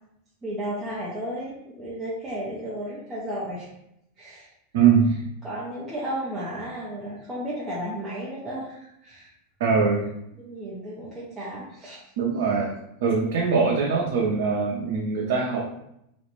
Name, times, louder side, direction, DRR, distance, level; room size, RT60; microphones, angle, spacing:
voice 1, 0.4-3.7 4.2-4.5 5.4-9.3 10.4-12.0, equal, 10° right, -8 dB, 0.5 m, -33 dB
voice 2, 4.7-5.1 9.6-10.0 12.2-12.7 13.0-15.7, right 5 dB, 65° right, -2 dB, 0.5 m, -22 dB
2.4 x 2.1 x 2.9 m, 0.79 s
supercardioid pair, 160°, 0 cm